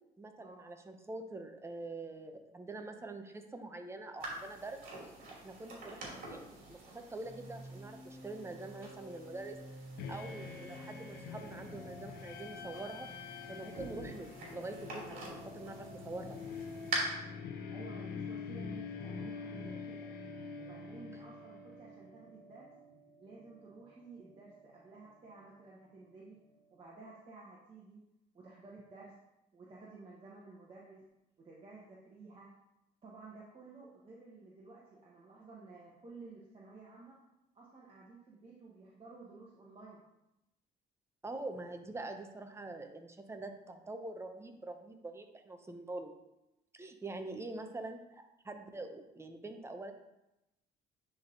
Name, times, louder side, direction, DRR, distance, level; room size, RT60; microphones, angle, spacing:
voice 1, 0.2-4.8 5.3-9.6 10.1-13.1 13.5-16.4 41.2-46.1 46.7-49.9, right 2 dB, 15° right, 5 dB, 0.8 m, -45 dB
sound 1, 4.2-17.0, right 3 dB, 55° right, 2.5 m, -47 dB
sound 2, 7.2-26.7, left 1 dB, 15° left, 2.3 m, -53 dB
sound 3, 10.0-22.0, left 5 dB, 65° left, 0.8 m, -46 dB
voice 2, 17.7-20.1 20.6-22.7 23.2-26.4 26.7-28.0 28.3-29.1 29.5-31.0 31.4-32.5 33.0-37.2 37.5-40.0, right 3 dB, 35° right, -5 dB, 1.4 m, -53 dB
9.6 x 3.6 x 3.9 m, 0.90 s
cardioid pair, 110°, 17 cm